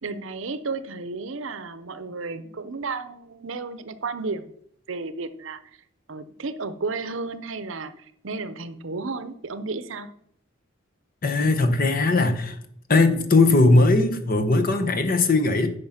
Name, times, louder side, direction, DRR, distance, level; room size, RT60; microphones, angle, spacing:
voice 1, 0.0-4.5 4.9-5.6 6.1-10.1, right 3 dB, 70° right, 13 dB, 0.7 m, -33 dB
voice 2, 11.2-12.6 12.9-15.7, left 2 dB, 45° left, 8 dB, 1.0 m, -19 dB
9.7 x 5.3 x 5.8 m, 0.68 s
head